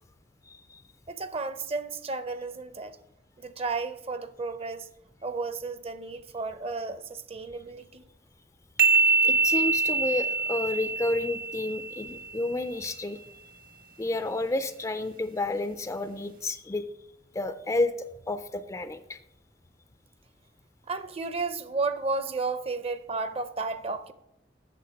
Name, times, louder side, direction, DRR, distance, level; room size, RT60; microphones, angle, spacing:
voice 1, 0.4-0.8 9.2-13.2 14.0-16.8 17.3-19.2, left 2 dB, 15° left, 0.4 m, -30 dB
voice 2, 1.1-3.0 3.4-4.9 5.2-8.0 20.9-24.1, right 3 dB, 35° right, 0.6 m, -33 dB
sound 1, 8.8-12.3, right 4 dB, 50° right, 0.9 m, -25 dB
8.5 x 6.7 x 5.3 m
head